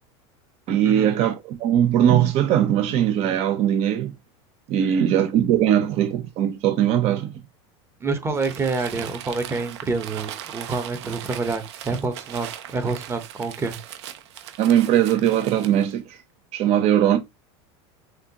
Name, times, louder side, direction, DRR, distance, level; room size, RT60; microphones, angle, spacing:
voice 1, 0.7-4.1 4.7-7.3 14.6-16.2 16.5-17.2, right 10 dB, 50° right, 0.9 m, -20 dB
voice 2, 8.0-13.8, right 3 dB, 20° right, 1.0 m, -27 dB
Crumpling crinkling, 8.3-15.9, right 11 dB, 90° right, 0.9 m, -39 dB
6.4 x 2.4 x 2.9 m
supercardioid pair, 135°, 14 cm